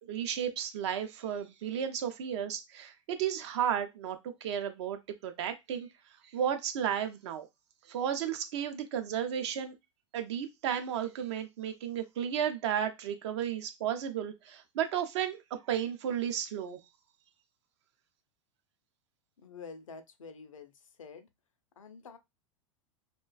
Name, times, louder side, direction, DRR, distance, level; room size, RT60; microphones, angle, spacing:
voice 1, 0.1-5.9 6.3-7.5 7.9-9.7 10.1-15.4 15.7-16.8, right 9 dB, 60° right, 0.5 m, -33 dB
voice 2, 19.4-20.7 21.0-21.3 21.8-22.2, left 5 dB, 80° left, 0.4 m, -47 dB
2.4 x 2.2 x 2.3 m
figure-of-eight pair, 90°, 17 cm